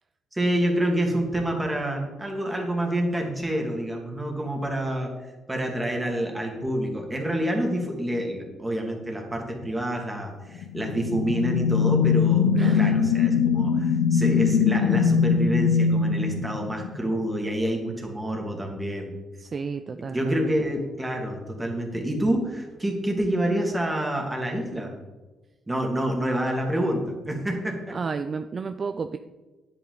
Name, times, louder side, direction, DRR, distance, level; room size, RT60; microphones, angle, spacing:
voice 1, 0.3-5.1 5.5-19.2 20.1-24.9 25.7-28.0, right 1 dB, 15° right, 1 dB, 2.3 m, -27 dB
sound 1, 10.6-17.1, left 6 dB, 85° left, 0.7 m, -22 dB
voice 2, 12.6-12.9 19.4-20.3 27.9-29.2, right 5 dB, 40° right, 9 dB, 0.4 m, -32 dB
9.7 x 8.2 x 3.9 m, 1.2 s
cardioid pair, 90°, 0 cm